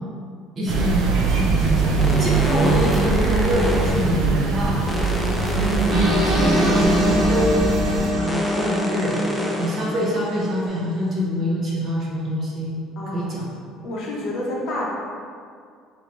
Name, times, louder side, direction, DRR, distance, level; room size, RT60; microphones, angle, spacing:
voice 1, 0.6-1.1 1.3-5.2 5.6-7.6 8.1-9.1 9.6-12.8 13.1-13.5, equal, 30° right, -5 dB, 0.8 m, -25 dB
sound 1, 0.7-8.1, right 4 dB, 55° right, 0.5 m, -22 dB
sound 2, 2.0-4.2 4.9-7.4 8.3-9.9 10.7-10.8, left 1 dB, 5° left, 0.4 m, -29 dB
sound 3, 5.9-10.8, equal, 70° right, 1.1 m, -23 dB
voice 2, 13.0-13.3 13.8-14.9, left 1 dB, 50° left, -4 dB, 0.8 m, -29 dB
4.6 x 2.6 x 3.1 m, 2.2 s
cardioid pair, 155°, 0 cm